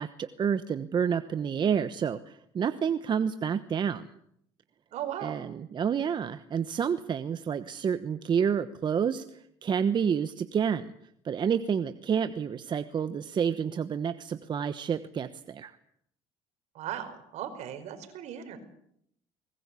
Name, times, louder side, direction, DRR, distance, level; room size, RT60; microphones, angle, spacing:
voice 1, 0.0-4.1 5.2-10.9 11.2-15.8, right 7 dB, 40° right, 11 dB, 1.1 m, -29 dB
voice 2, 4.9-5.3 16.7-18.6, right 10 dB, 65° right, 8 dB, 5.0 m, -37 dB
23.5 x 20.0 x 8.4 m, 0.73 s
cardioid pair, 110°, 12 cm